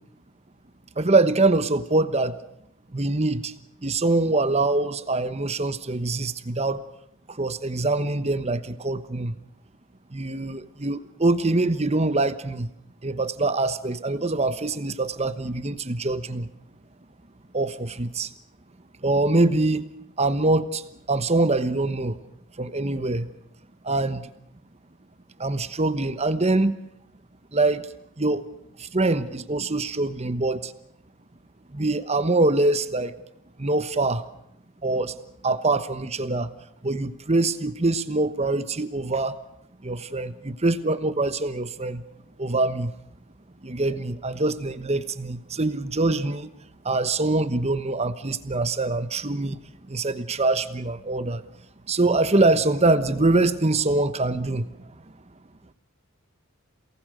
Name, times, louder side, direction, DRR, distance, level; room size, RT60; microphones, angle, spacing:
voice 1, 1.0-2.4 2.9-3.5 3.8-6.8 7.3-9.3 10.1-12.7 13.0-16.5 17.5-18.3 19.0-19.8 20.2-20.8 21.1-22.2 22.6-23.3 23.8-24.3 25.4-26.8 27.5-27.9 28.2-28.5 28.8-30.7 31.7-33.2 33.6-34.3 34.8-35.2 35.4-36.5 36.8-39.4 39.8-42.0 42.4-42.9 43.6-46.5 46.8-49.6 49.9-51.4 51.9-54.7, right 2 dB, 30° right, 12 dB, 1.1 m, -24 dB
28.5 x 19.0 x 6.7 m, 0.78 s
head